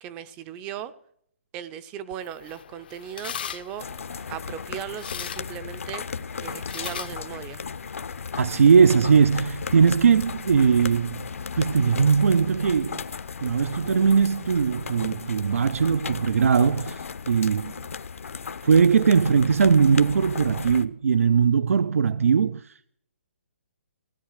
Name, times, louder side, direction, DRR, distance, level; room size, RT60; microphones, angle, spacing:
voice 1, 0.0-0.9 1.5-3.9 4.3-6.1 6.4-7.6, right 9 dB, 15° right, 0.5 m, -37 dB
sound 1, 2.1-8.2, left 9 dB, 45° left, 0.6 m, -40 dB
sound 2, 3.8-20.9, left 6 dB, 75° left, 0.9 m, -36 dB
voice 2, 8.4-11.2 11.6-13.0 13.4-17.7 18.6-22.7, right 6 dB, 80° right, 0.5 m, -20 dB
16.0 x 9.9 x 6.5 m
hypercardioid pair, 170°, 7 cm